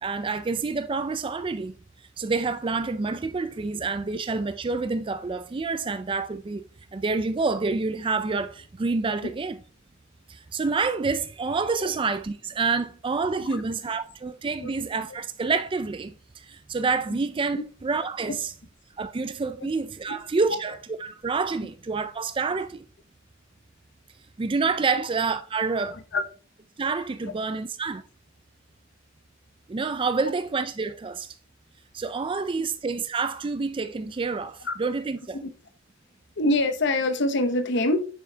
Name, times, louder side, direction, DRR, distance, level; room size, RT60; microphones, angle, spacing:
voice 1, 0.0-1.7 2.2-6.6 6.9-9.6 10.3-18.5 19.0-22.8 24.4-26.0 26.8-28.0 29.7-31.3 31.9-35.4, right 4 dB, 25° right, 0.4 m, -28 dB
voice 2, 36.4-38.0, left 2 dB, 60° left, 0.9 m, -24 dB
7.1 x 6.0 x 2.8 m
head